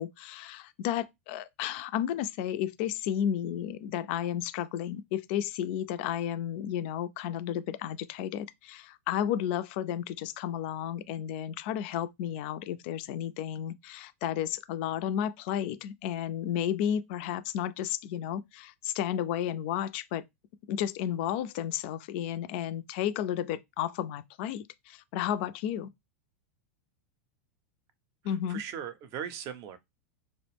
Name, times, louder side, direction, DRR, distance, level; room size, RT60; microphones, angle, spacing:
voice 1, 0.0-20.2 20.7-25.9 28.2-28.6, left 10 dB, 50° left, 0.3 m, -32 dB
voice 2, 28.5-29.8, right 8 dB, 40° right, 0.6 m, -38 dB
2.4 x 2.0 x 3.3 m
figure-of-eight pair, 95°, 8 cm